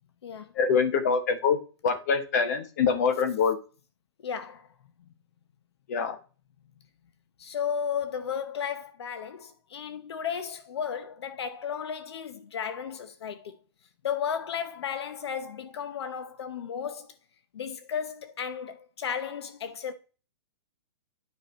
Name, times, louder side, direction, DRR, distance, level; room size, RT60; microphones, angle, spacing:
voice 1, 0.5-3.6 5.9-6.2, left 5 dB, 35° left, 1.2 m, -25 dB
voice 2, 4.2-4.7 7.4-13.6 14.0-17.1 17.5-19.9, left 7 dB, 70° left, 0.9 m, -34 dB
9.6 x 4.9 x 4.4 m
hypercardioid pair, 180°, 14 cm